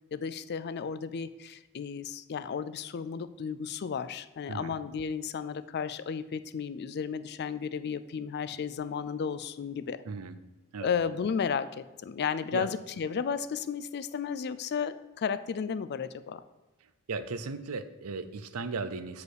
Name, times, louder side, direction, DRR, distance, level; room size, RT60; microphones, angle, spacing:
voice 1, 0.1-10.0 10.8-16.4, left 6 dB, 50° left, 14 dB, 0.4 m, -33 dB
voice 2, 10.1-10.4 10.7-10.9 12.5-12.7 17.1-19.2, right 4 dB, 75° right, 11 dB, 0.6 m, -36 dB
8.1 x 4.8 x 4.8 m, 1.1 s
head